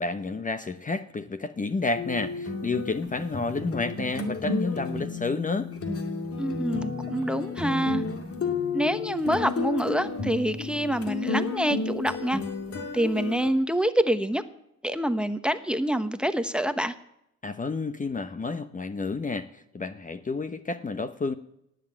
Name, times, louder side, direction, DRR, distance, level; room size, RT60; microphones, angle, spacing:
voice 1, 0.0-5.7 17.4-21.3, left 3 dB, 25° left, 11 dB, 0.9 m, -30 dB
sound 1, 1.9-13.5, left 4 dB, 50° left, 2.5 m, -32 dB
voice 2, 6.4-8.0 8.7-12.4 12.9-14.4 14.8-16.9, right 1 dB, 5° right, 11 dB, 1.0 m, -26 dB
18.5 x 7.6 x 8.9 m, 0.79 s
cardioid pair, 90°, 30 cm